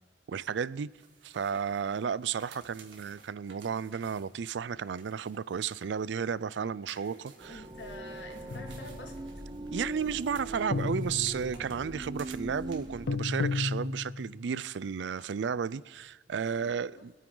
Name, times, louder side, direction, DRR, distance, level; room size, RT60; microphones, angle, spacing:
voice 1, 0.3-0.9 1.2-7.6 9.7-17.1, right 7 dB, 70° right, 0.4 m, -33 dB
sound 1, 0.8-6.3 6.7-13.0 13.3-14.2 14.4-14.5 15.2-15.3, right 4 dB, 90° right, 2.4 m, -56 dB
sound 2, 7.4-13.1, right 1 dB, 25° right, 0.8 m, -41 dB
voice 2, 7.5-9.1 16.4-17.0, left 2 dB, 70° left, 2.3 m, -47 dB
sound 3, 8.5-9.1 10.7-11.7 13.1-14.4, left 3 dB, 85° left, 0.7 m, -33 dB
25.0 x 9.3 x 3.9 m
head